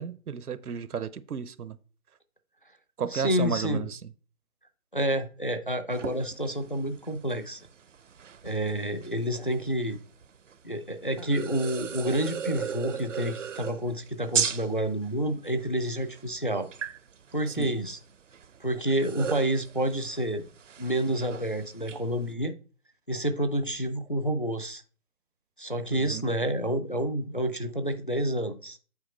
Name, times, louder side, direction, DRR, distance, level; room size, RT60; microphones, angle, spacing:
voice 1, 0.0-1.8 3.0-4.0 17.5-17.7 25.9-26.3, right 7 dB, 85° right, 0.8 m, -33 dB
voice 2, 3.1-3.9 4.9-7.7 8.4-10.0 10.6-16.7 17.3-18.0 18.6-20.4 20.8-22.5 23.1-24.8 25.6-28.8, right 1 dB, 40° left, 0.4 m, -29 dB
sound 1, 5.9-22.3, right 7 dB, 60° right, 0.5 m, -37 dB
7.9 x 4.4 x 4.3 m
hypercardioid pair, 170°, 44 cm